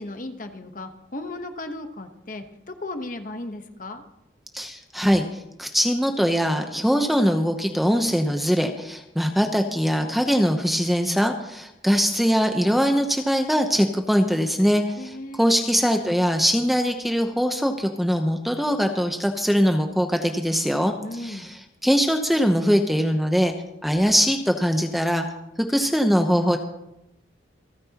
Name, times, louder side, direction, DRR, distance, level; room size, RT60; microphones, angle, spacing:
voice 1, 0.0-4.0 15.0-15.4 21.0-21.5, left 2 dB, 45° left, 7 dB, 1.1 m, -35 dB
voice 2, 4.5-23.5 23.8-25.3 25.6-26.6, equal, ahead, 5 dB, 0.7 m, -22 dB
27.5 x 9.5 x 2.9 m, 0.87 s
head